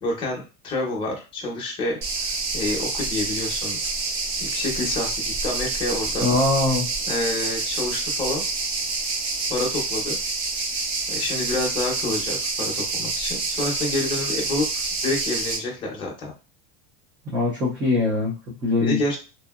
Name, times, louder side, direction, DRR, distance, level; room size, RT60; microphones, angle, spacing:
voice 1, 0.0-2.0 2.5-3.8 4.4-6.3 7.1-8.4 9.5-10.2 11.1-16.3 18.8-19.2, left 2 dB, 15° left, -2 dB, 0.7 m, -28 dB
sound 1, 2.0-15.6, right 3 dB, 50° right, 0.7 m, -27 dB
voice 2, 6.2-6.9 17.3-19.2, left 2 dB, 15° right, -6 dB, 0.3 m, -22 dB
2.7 x 2.5 x 2.3 m, 0.32 s
cardioid pair, 180°, 31 cm